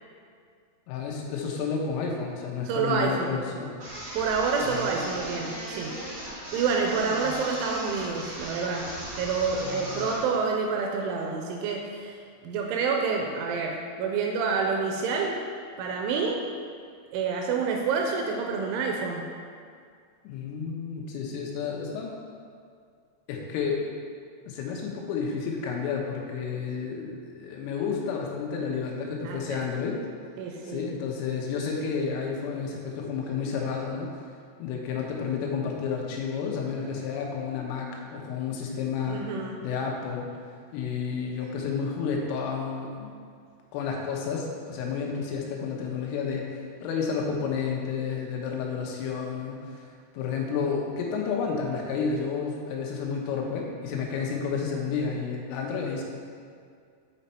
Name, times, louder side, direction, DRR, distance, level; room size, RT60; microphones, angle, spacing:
voice 1, 0.9-3.8 4.7-5.1 7.1-7.3 9.6-10.1 20.3-22.2 23.3-23.8 24.5-30.0 30.6-34.1 34.6-39.3 39.6-40.3 40.7-43.1 43.7-49.8 50.1-56.0, left 5 dB, 80° left, 0 dB, 3.5 m, -31 dB
voice 2, 2.7-3.3 4.1-5.9 6.5-8.9 9.2-15.4 15.8-16.4 17.1-19.3 29.2-29.6 30.4-30.9 39.1-39.6, right 5 dB, 85° right, 1 dB, 2.9 m, -28 dB
sound 1, 3.8-10.3, right 1 dB, 55° right, 2.0 m, -37 dB
8.1 x 5.4 x 4.3 m, 2.2 s
omnidirectional pair, 5.9 m